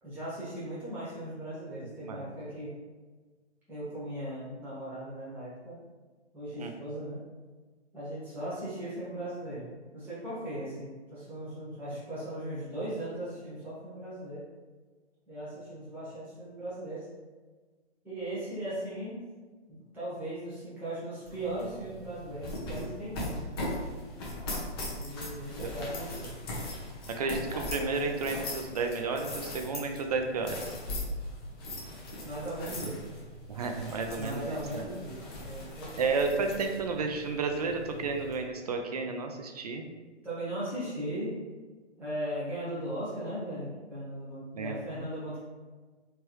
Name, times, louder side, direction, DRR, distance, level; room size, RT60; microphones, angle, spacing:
voice 1, 0.0-2.8 3.7-5.8 6.3-7.2 7.9-9.6 9.9-14.4 15.3-17.1 18.0-19.2 19.7-23.7 25.0-26.3 32.2-33.0 34.1-36.1 40.2-41.4 42.0-45.4, right 1 dB, 5° right, -10 dB, 1.1 m, -38 dB
sound 1, 21.3-38.4, left 1 dB, 20° left, 0.6 m, -40 dB
voice 2, 27.2-30.6 32.8-32.9 33.5-34.9 36.0-39.9 44.5-44.8, right 4 dB, 35° right, 4 dB, 0.4 m, -32 dB
3.3 x 3.3 x 2.9 m, 1.3 s
hypercardioid pair, 145°, 34 cm